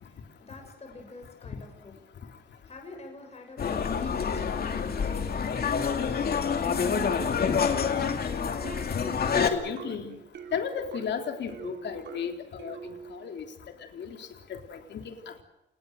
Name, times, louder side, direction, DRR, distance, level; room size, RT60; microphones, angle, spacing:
voice 1, 0.0-1.9 2.2-6.9, left 2 dB, 35° left, 3 dB, 6.8 m, -49 dB
sound 1, 3.6-9.5, left 6 dB, 60° left, 2.5 m, -27 dB
sound 2, 8.6-13.4, right 7 dB, 80° right, 2.6 m, -44 dB
voice 2, 9.5-10.1 10.5-12.8 13.1-13.4 13.9-15.4, left 7 dB, 75° left, 5 dB, 3.5 m, -34 dB
28.5 x 19.5 x 6.6 m, 0.90 s
cardioid pair, 110°, 18 cm